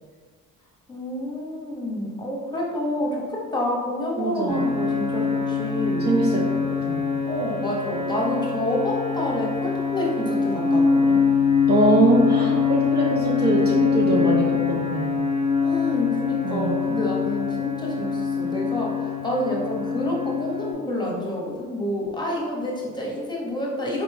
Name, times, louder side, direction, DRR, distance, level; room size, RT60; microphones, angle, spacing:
voice 1, 0.9-6.1 7.2-11.2 15.6-24.0, left 1 dB, 15° left, -3 dB, 1.0 m, -28 dB
voice 2, 4.2-4.7 6.0-6.5 6.9-7.0 11.7-15.2 16.4-16.8 18.4-18.6, right 2 dB, 30° right, -3 dB, 0.6 m, -22 dB
sound 1, 4.5-20.7, left 5 dB, 50° right, 1.0 m, -24 dB
4.0 x 3.0 x 3.4 m, 1.5 s
cardioid pair, 95°, 33 cm